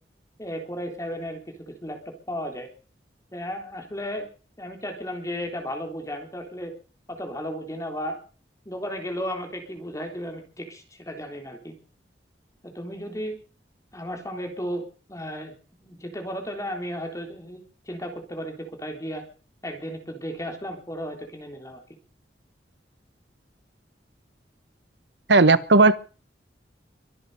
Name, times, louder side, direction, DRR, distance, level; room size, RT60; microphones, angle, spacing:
voice 1, 0.4-2.7 3.3-4.3 4.6-6.7 7.1-8.2 8.7-11.8 12.6-13.4 13.9-15.5 15.8-17.6 17.9-19.2 19.6-21.8, equal, 20° left, 4 dB, 3.5 m, -34 dB
voice 2, 25.3-25.9, right 3 dB, 80° right, 15 dB, 1.1 m, -15 dB
23.5 x 8.4 x 6.7 m, 0.39 s
head